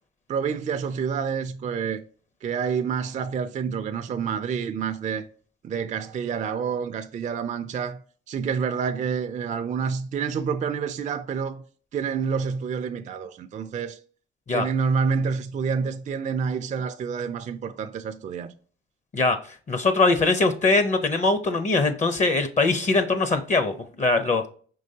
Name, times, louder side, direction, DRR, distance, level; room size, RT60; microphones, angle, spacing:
voice 1, 0.3-2.0 2.4-5.3 5.6-8.0 8.3-11.6 11.9-14.0 14.5-18.5, right 6 dB, 40° right, 0.4 m, -28 dB
voice 2, 19.7-24.4, left 3 dB, 35° left, 0.7 m, -22 dB
5.3 x 3.1 x 2.7 m
cardioid pair, 90°, 20 cm